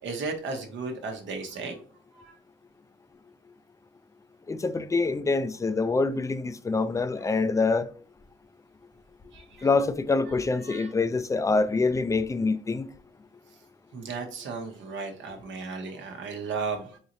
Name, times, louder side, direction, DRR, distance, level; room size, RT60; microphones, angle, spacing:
voice 1, 0.0-1.8 2.1-2.3 7.2-7.3 9.3-9.7 10.6-10.9 13.9-17.0, right 4 dB, 70° right, 1.0 m, -35 dB
voice 2, 4.5-7.9 9.6-12.9, left 3 dB, 15° left, 0.3 m, -25 dB
3.9 x 3.0 x 2.5 m
cardioid pair, 90°, 20 cm